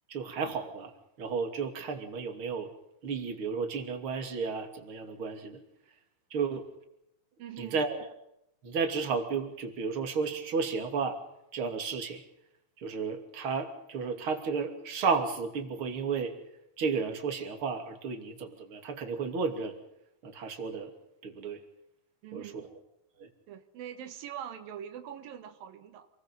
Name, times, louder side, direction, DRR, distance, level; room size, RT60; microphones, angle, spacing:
voice 1, 0.1-0.9 1.2-2.7 3.0-5.6 6.3-6.7 7.6-8.0 8.6-11.2 11.5-12.2 12.8-16.3 16.8-19.7 20.2-20.9 21.2-21.6 22.3-22.5 23.2-23.3, right 5 dB, 40° right, 5 dB, 3.4 m, -33 dB
voice 2, 7.4-7.8 22.2-22.7 23.5-26.1, right 9 dB, 85° right, 9 dB, 3.3 m, -43 dB
28.0 x 22.0 x 5.6 m, 0.81 s
omnidirectional pair, 3.9 m